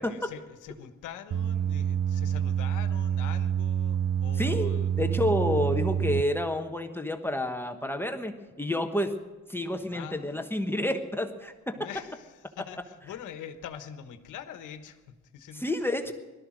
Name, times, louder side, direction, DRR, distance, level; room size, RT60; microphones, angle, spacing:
voice 1, 0.0-4.9 9.9-10.5 11.8-15.6 16.1-16.2, left 9 dB, 85° left, 9 dB, 1.3 m, -44 dB
sound 1, 1.3-6.2, right 9 dB, 55° right, 0.7 m, -27 dB
voice 2, 4.4-9.1 9.5-11.9 15.5-16.1, left 1 dB, 5° left, 5 dB, 1.2 m, -29 dB
17.5 x 13.0 x 6.3 m, 1.2 s
cardioid pair, 90°, 30 cm